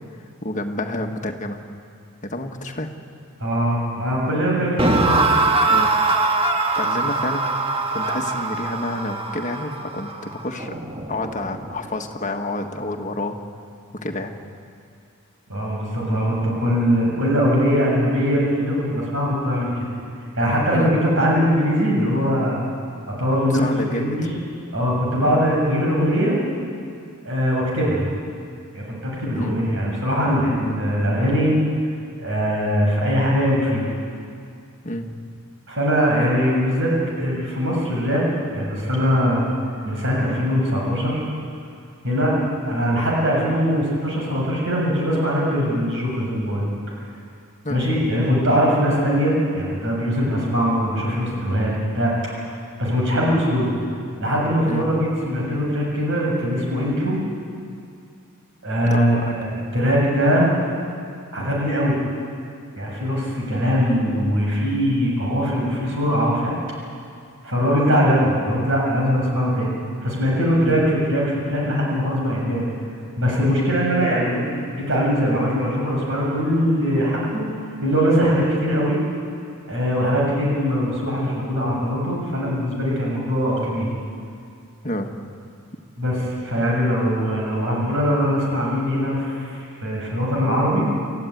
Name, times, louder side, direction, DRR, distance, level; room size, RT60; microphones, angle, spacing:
voice 1, 0.4-1.6 2.2-2.9 4.7-4.8 5.7-5.9 6.7-7.4 7.9-10.8 11.1-13.4 13.9-14.3 20.7-20.9 23.5-24.2 25.2-25.4 29.3-29.5 34.8-35.1 47.6-47.8 54.7-54.9 58.9-59.3 70.6-70.8 84.8-85.1, left 1 dB, 35° left, 3 dB, 1.7 m, -29 dB
voice 2, 3.4-5.3 15.5-19.9 20.3-22.6 23.2-24.3 24.7-26.4 27.2-28.0 28.7-31.6 32.2-33.8 35.7-38.2 38.5-39.4 39.8-41.2 42.0-46.7 47.7-53.7 54.2-57.2 58.6-60.5 61.3-61.9 62.7-66.6 67.4-69.7 70.0-72.6 73.2-74.4 74.7-77.5 77.8-79.0 79.7-83.9 86.0-90.8, equal, 60° right, -3 dB, 6.9 m, -21 dB
sound 1, 4.8-11.9, right 3 dB, 25° right, 1.4 m, -22 dB
28.5 x 14.5 x 9.4 m, 2.4 s
head